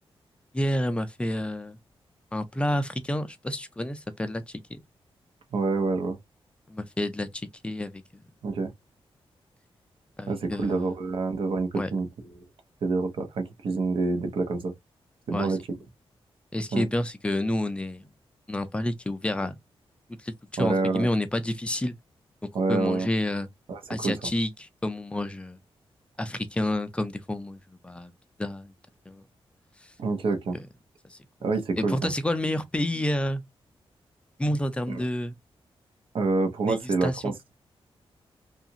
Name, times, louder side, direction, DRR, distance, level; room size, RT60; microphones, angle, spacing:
voice 1, 0.5-1.8 2.3-4.8 6.7-8.0 10.2-10.9 11.7-11.9 15.3-15.6 16.5-18.1 18.5-19.6 20.2-22.0 22.7-23.5 23.9-25.6 26.2-28.1 28.4-28.7 29.1-29.2 30.5-30.7 31.0-31.2 31.8-33.4 34.4-35.4 36.7-37.3, left 1 dB, 10° left, 0.4 m, -29 dB
voice 2, 5.5-6.2 8.4-8.7 10.3-12.1 12.8-14.7 15.3-15.6 16.7-16.8 20.6-21.1 22.5-23.1 23.7-24.1 30.0-30.6 31.4-32.1 34.9-35.0 36.1-37.5, right 3 dB, 65° right, 0.8 m, -27 dB
2.9 x 2.4 x 2.7 m
wide cardioid pair, 155°, 10 cm